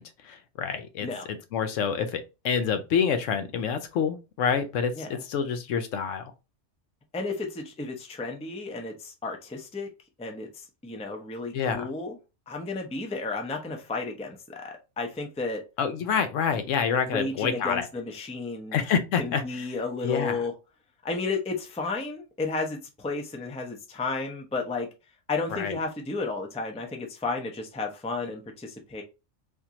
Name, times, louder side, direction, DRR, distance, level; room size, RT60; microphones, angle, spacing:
voice 1, 0.0-6.3 11.5-11.9 15.8-17.9 18.7-19.7 20.0-20.4 25.5-25.8, left 7 dB, 85° left, 1.0 m, -27 dB
voice 2, 7.1-9.9 10.2-12.1 12.5-15.6 17.1-18.8 19.2-20.5 21.0-24.9 25.3-29.0, left 3 dB, 10° left, 0.3 m, -33 dB
3.6 x 2.6 x 2.8 m
omnidirectional pair, 1.3 m